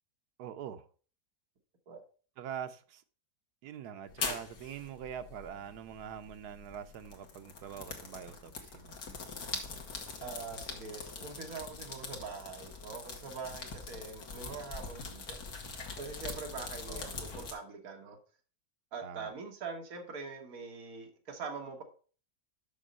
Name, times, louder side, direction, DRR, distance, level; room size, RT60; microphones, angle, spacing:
voice 1, 0.4-0.9 2.4-3.0 3.6-9.0 16.9-17.1 19.0-19.3, right 8 dB, 80° right, 1.3 m, -44 dB
sound 1, 4.1-17.5, left 4 dB, 70° left, 1.9 m, -43 dB
voice 2, 10.2-15.4 16.0-18.2 18.9-21.8, right 4 dB, 65° right, 1.7 m, -43 dB
6.2 x 6.2 x 5.3 m
omnidirectional pair, 1.7 m